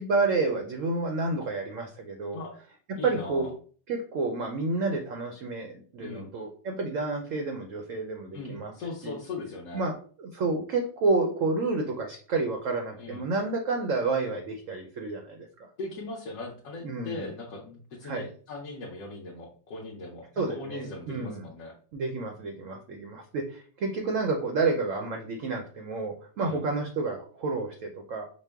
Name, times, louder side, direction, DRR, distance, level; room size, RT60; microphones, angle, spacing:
voice 1, 0.0-2.4 3.0-3.5 3.9-8.7 9.0-9.2 9.7-15.7 16.8-17.3 18.0-18.3 20.4-21.5 21.9-28.3, right 3 dB, 70° right, 3 dB, 0.7 m, -30 dB
voice 2, 3.0-3.5 6.0-6.3 8.3-9.9 13.0-13.2 15.8-21.7 26.4-26.7, left 3 dB, 60° left, -3 dB, 1.0 m, -39 dB
5.1 x 2.0 x 3.4 m, 0.44 s
omnidirectional pair, 2.0 m